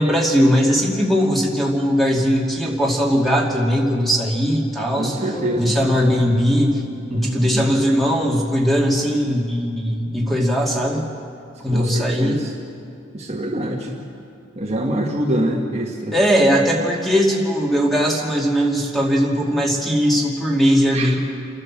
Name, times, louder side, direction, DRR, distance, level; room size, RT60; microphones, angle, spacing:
voice 1, 0.0-6.8 7.1-11.1 11.6-12.4 16.1-21.2, equal, ahead, -2 dB, 2.5 m, -19 dB
voice 2, 5.0-5.8 7.1-7.8 11.7-12.5 13.1-13.9 14.5-16.1 20.9-21.1, right 1 dB, 30° right, -1 dB, 1.7 m, -25 dB
sound 1, 5.3-9.4, left 2 dB, 35° left, 5.3 m, -40 dB
29.5 x 12.0 x 7.5 m, 2.5 s
head